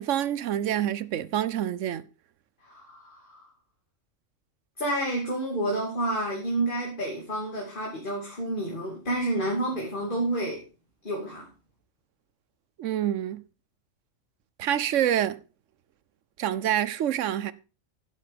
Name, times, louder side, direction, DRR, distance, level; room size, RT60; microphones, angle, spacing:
voice 1, 0.0-2.0 12.8-13.4 14.6-15.4 16.4-17.5, right 11 dB, 70° right, 1.0 m, -27 dB
voice 2, 2.6-3.5 4.8-10.6 11.0-11.5, right 1 dB, 40° left, 2.7 m, -29 dB
11.0 x 8.1 x 5.1 m
omnidirectional pair, 1.4 m